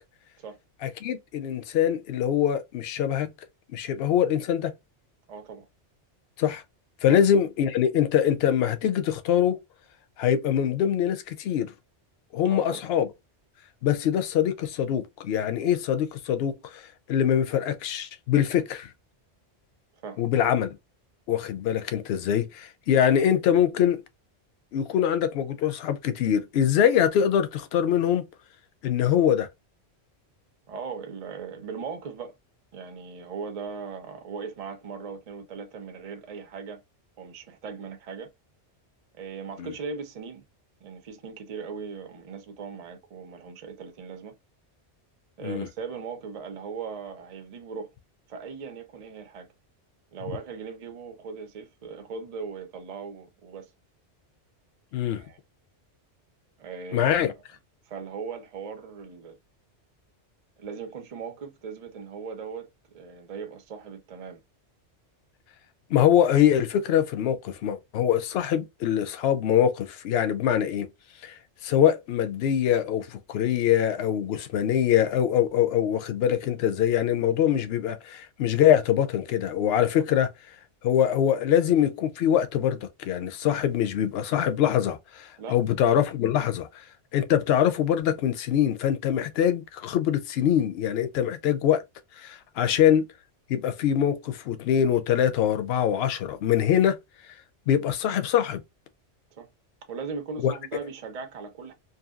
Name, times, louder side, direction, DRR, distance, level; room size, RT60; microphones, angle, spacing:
voice 1, 0.8-3.3 3.7-4.7 6.4-6.6 7.0-9.6 10.2-11.7 12.3-13.1 13.8-16.8 17.1-18.9 20.2-20.7 21.3-24.0 24.7-28.2 28.8-29.5 39.6-39.7 45.4-45.7 54.9-55.2 56.9-57.3 65.9-70.9 71.2-71.3 71.6-80.3 80.8-86.8 87.1-91.8 92.2-93.1 93.5-97.0 97.7-98.6 100.4-100.5, left 10 dB, 65° left, 0.8 m, -23 dB
voice 2, 5.3-5.7 7.1-7.2 12.5-12.8 20.0-20.2 30.7-32.3 32.7-36.8 37.2-38.3 39.1-40.4 40.8-44.4 45.4-47.9 48.3-49.5 50.1-53.7 55.1-55.4 56.6-57.1 57.9-59.4 60.6-62.7 62.9-64.4 80.0-80.1 85.4-85.6 92.6-92.8 99.3-99.5 99.9-101.7, right 5 dB, 45° right, 0.5 m, -38 dB
2.8 x 2.5 x 2.3 m
omnidirectional pair, 1.2 m